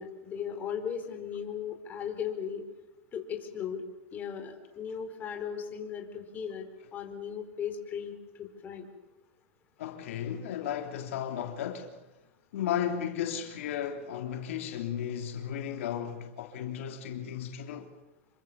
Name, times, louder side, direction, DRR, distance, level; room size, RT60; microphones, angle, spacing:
voice 1, 0.0-2.6 3.1-3.8 4.1-6.6 6.9-8.9, left 7 dB, 25° left, 4.5 m, -37 dB
voice 2, 9.8-12.0 12.5-17.9, left 9 dB, 75° left, 3.4 m, -34 dB
27.5 x 24.0 x 7.2 m
supercardioid pair, 145°, 7 cm